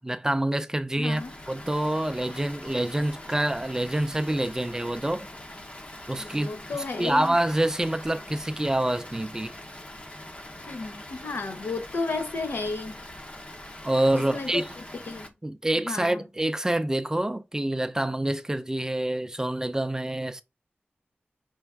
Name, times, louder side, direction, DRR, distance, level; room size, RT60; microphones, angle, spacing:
voice 1, 0.0-1.2 1.5-5.3 6.1-9.6 13.8-14.7 15.4-20.4, right 1 dB, 15° right, 0.4 m, -27 dB
voice 2, 1.0-1.3 6.2-7.3 10.6-12.9 14.1-14.6 15.1-15.3 15.8-16.2, left 3 dB, 75° left, 0.8 m, -33 dB
Water, 1.1-15.3, left 1 dB, 30° left, 0.7 m, -43 dB
5.5 x 2.4 x 3.4 m
wide cardioid pair, 105°, 4 cm